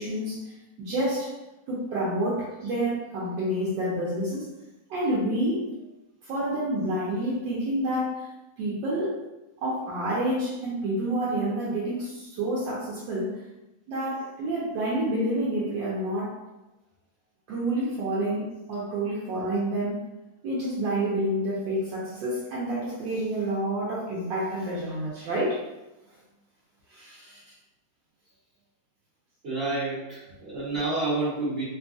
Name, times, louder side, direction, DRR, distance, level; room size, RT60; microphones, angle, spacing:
voice 1, 0.0-1.4 1.7-4.5 4.9-5.7 6.2-8.3 8.6-9.2 9.6-13.4 13.9-16.4 17.5-20.1 20.4-25.6 26.9-27.4, right 1 dB, 80° right, -7 dB, 1.3 m, -28 dB
voice 2, 29.4-31.6, right 2 dB, 40° right, -11 dB, 1.1 m, -29 dB
3.4 x 2.3 x 2.5 m, 0.99 s
omnidirectional pair, 2.0 m